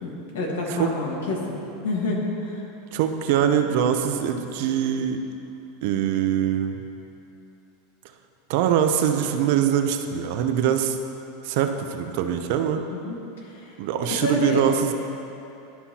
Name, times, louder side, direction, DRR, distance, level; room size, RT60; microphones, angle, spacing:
voice 1, 0.0-1.6 1.8-2.6 12.9-13.7 14.1-14.6, left 2 dB, 90° left, -1 dB, 1.5 m, -28 dB
voice 2, 2.9-5.2 5.8-6.8 8.5-11.0 11.4-12.8 13.8-14.9, right 9 dB, 60° right, 7 dB, 0.5 m, -23 dB
12.0 x 5.6 x 2.9 m, 2.9 s
supercardioid pair, 155°, 0 cm